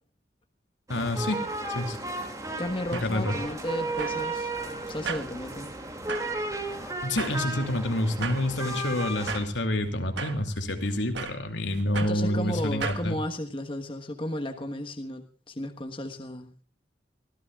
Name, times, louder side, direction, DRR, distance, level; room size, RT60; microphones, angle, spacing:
voice 1, 0.9-1.4 1.7-2.0 2.9-3.3 7.0-13.2, left 1 dB, 80° left, 5 dB, 2.8 m, -28 dB
sound 1, 0.9-9.4, right 2 dB, 20° right, 2.5 m, -34 dB
voice 2, 2.6-4.5 4.9-5.7 12.0-16.6, left 1 dB, 25° left, 4 dB, 1.4 m, -34 dB
sound 2, 2.6-13.1, right 5 dB, 75° right, 1.5 m, -39 dB
24.5 x 16.0 x 2.4 m, 0.41 s
head